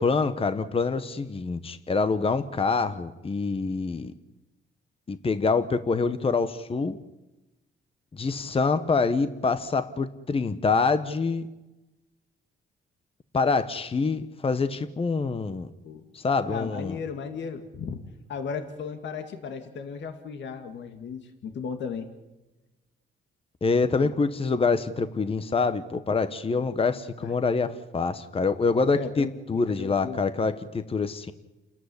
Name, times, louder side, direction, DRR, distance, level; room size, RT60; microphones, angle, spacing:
voice 1, 0.0-4.1 5.1-7.0 8.1-11.4 13.3-15.7 16.1-17.0 23.6-31.3, left 4 dB, 30° left, 11 dB, 1.1 m, -26 dB
voice 2, 16.5-18.0 18.3-22.1 23.9-24.1 27.2-27.3 28.9-30.2, left 6 dB, 65° left, 7 dB, 2.1 m, -36 dB
29.5 x 13.5 x 9.8 m, 1.1 s
cardioid pair, 90°, 20 cm